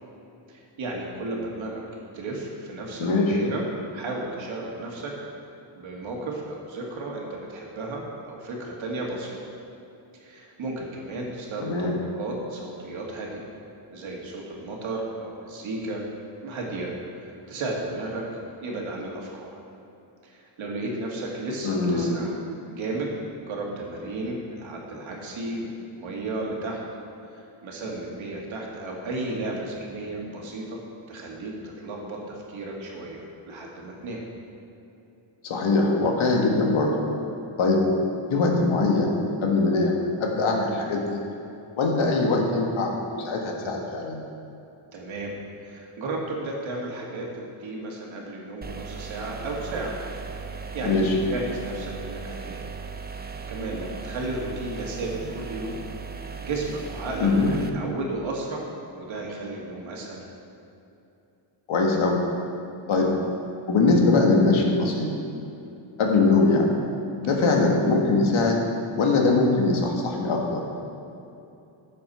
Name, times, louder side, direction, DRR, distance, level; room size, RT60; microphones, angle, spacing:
voice 1, 0.5-1.8 2.1-3.6 3.9-5.1 5.7-9.4 10.1-13.5 13.9-16.0 16.4-18.2 18.6-19.5 20.2-22.4 22.7-23.1 23.4-26.8 27.3-30.8 31.1-34.2 44.9-45.3 45.6-50.0 50.5-51.0 51.3-52.6 53.5-55.8 56.4-58.7 58.9-60.2 67.2-67.5, right 2 dB, 70° right, -2 dB, 2.1 m, -34 dB
voice 2, 3.0-3.4 11.6-11.9 21.6-22.2 35.4-36.9 37.6-37.8 38.3-39.1 39.4-41.2 41.8-44.2 50.8-51.1 57.2-57.5 61.7-62.2 62.9-63.1 63.7-65.1 66.0-66.7 67.2-68.6 68.9-70.6, left 3 dB, 75° left, 0 dB, 1.7 m, -22 dB
sound 1, 48.6-57.7, right 5 dB, 20° right, 0.6 m, -37 dB
12.5 x 7.6 x 4.3 m, 2.8 s
wide cardioid pair, 125°, 48 cm